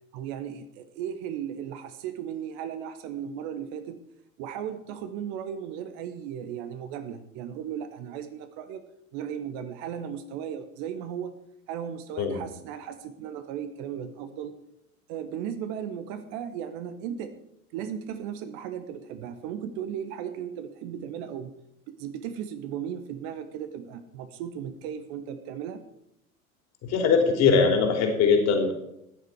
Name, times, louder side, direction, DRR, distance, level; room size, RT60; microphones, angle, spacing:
voice 1, 0.1-4.0 4.4-8.8 9.1-11.3 11.7-14.5 15.1-17.4 17.7-21.5 22.0-25.8, right 9 dB, 45° right, 9 dB, 1.3 m, -36 dB
voice 2, 26.8-28.7, left 5 dB, 40° left, 4 dB, 3.2 m, -21 dB
15.0 x 10.5 x 4.7 m, 0.79 s
figure-of-eight pair, 80°, 42 cm